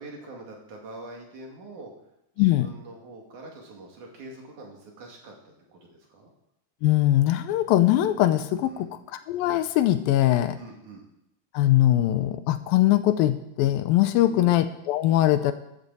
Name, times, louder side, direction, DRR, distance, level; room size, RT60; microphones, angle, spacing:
voice 1, 0.0-1.9 2.4-6.3 8.6-9.0 10.6-11.0 14.2-14.6, right 2 dB, 55° right, 0 dB, 3.4 m, -44 dB
voice 2, 6.8-10.6 11.5-15.5, left 14 dB, 80° left, 11 dB, 2.3 m, -21 dB
14.5 x 12.0 x 4.1 m, 0.82 s
omnidirectional pair, 4.3 m